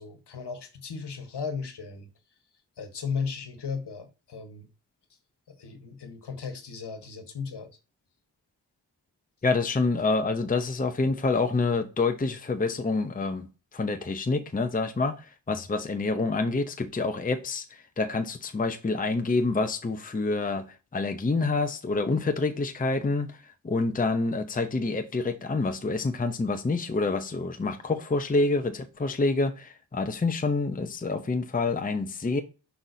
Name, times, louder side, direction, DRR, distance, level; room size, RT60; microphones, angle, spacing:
voice 1, 0.0-2.1 2.8-4.7 5.5-7.7, left 5 dB, 60° left, 1.5 m, -36 dB
voice 2, 9.4-13.5 13.7-20.7 20.9-23.4 23.6-32.4, left 3 dB, 20° left, 0.7 m, -27 dB
6.0 x 5.7 x 2.7 m
cardioid pair, 45°, 45 cm